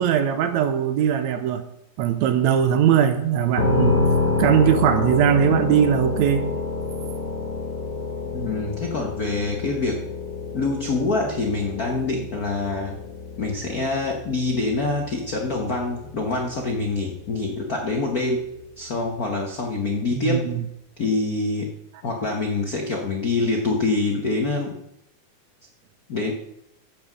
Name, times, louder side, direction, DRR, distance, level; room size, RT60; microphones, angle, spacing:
voice 1, 0.0-1.6 2.0-4.0 4.4-6.5 20.1-20.6, right 9 dB, 75° right, 10 dB, 2.0 m, -20 dB
sound 1, 3.6-17.3, left 3 dB, 25° left, 1.4 m, -28 dB
voice 2, 8.3-10.0 10.5-13.0 13.4-18.4 18.8-20.5 21.0-21.7 22.0-24.8 26.1-26.3, left 3 dB, 65° left, 1 dB, 0.9 m, -25 dB
15.0 x 5.9 x 6.3 m, 0.83 s
omnidirectional pair, 3.4 m